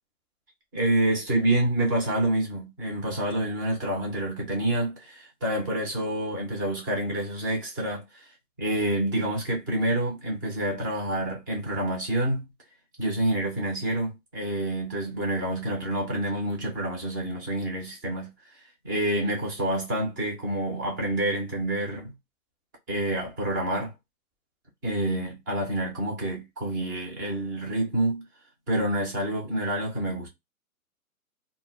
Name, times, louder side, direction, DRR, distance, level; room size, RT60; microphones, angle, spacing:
voice 1, 0.7-8.3 8.6-12.5 13.0-18.3 18.8-22.1 22.9-23.9 24.8-28.2 28.7-30.3, right 1 dB, 15° right, 0.5 m, -28 dB
2.1 x 2.1 x 3.6 m
hypercardioid pair, 145°, 44 cm